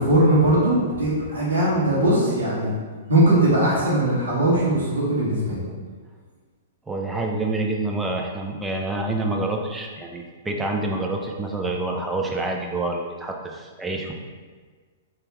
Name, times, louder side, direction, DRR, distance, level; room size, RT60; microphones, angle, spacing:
voice 1, 0.0-2.7 3.1-5.6, right 1 dB, 75° right, -7 dB, 1.5 m, -20 dB
voice 2, 6.9-14.1, right 2 dB, 10° right, 1 dB, 0.5 m, -27 dB
3.4 x 2.9 x 3.3 m, 1.5 s
hypercardioid pair, 115°, 0 cm